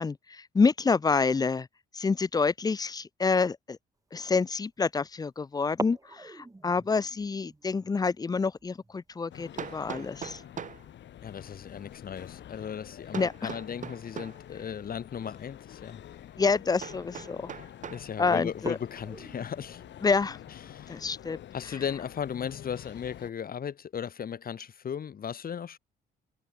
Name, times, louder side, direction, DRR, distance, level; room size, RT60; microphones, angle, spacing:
voice 1, 0.0-1.7 1.9-3.8 4.1-10.4 13.1-13.5 16.4-17.5 18.2-18.8 20.0-20.4 20.9-21.4, left 4 dB, 20° left, 0.4 m, -27 dB
sound 1, 4.1-4.4 5.6-12.1 12.3-12.4 12.8-13.2 14.2-14.4 15.0-15.1 15.6-15.7 16.1-16.4 17.0-17.4 17.8-17.9 18.5-20.8, right 2 dB, 15° right, 4.9 m, -44 dB
sound 2, 9.3-23.3, left 11 dB, 65° left, 1.4 m, -47 dB
Hammer, 9.6-10.9 13.1-14.4 16.8-18.1, right 7 dB, 40° right, 0.8 m, -40 dB
voice 2, 11.2-16.0 17.9-19.8 20.7-21.0 21.5-25.8, left 8 dB, 50° left, 1.5 m, -36 dB
cardioid pair, 90°, 20 cm